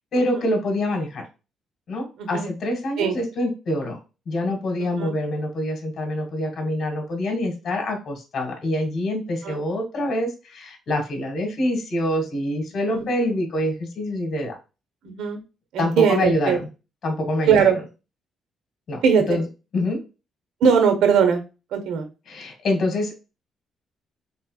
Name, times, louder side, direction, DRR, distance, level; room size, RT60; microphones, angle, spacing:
voice 1, 0.1-1.2 1.9-4.0 4.3-14.6 15.8-16.6 17.0-17.7 18.9-19.0 19.3-19.4 19.7-20.0 22.3-23.2, left 1 dB, 55° left, 3 dB, 2.1 m, -25 dB
voice 2, 2.2-2.5 3.0-3.2 4.8-5.1 9.4-9.6 12.9-13.1 15.0-15.4 15.7-16.6 17.5-17.8 19.0-19.4 20.6-21.4 21.7-22.1, right 6 dB, 85° right, 7 dB, 1.1 m, -20 dB
4.3 x 4.3 x 2.4 m, 0.29 s
cardioid pair, 90°, 0 cm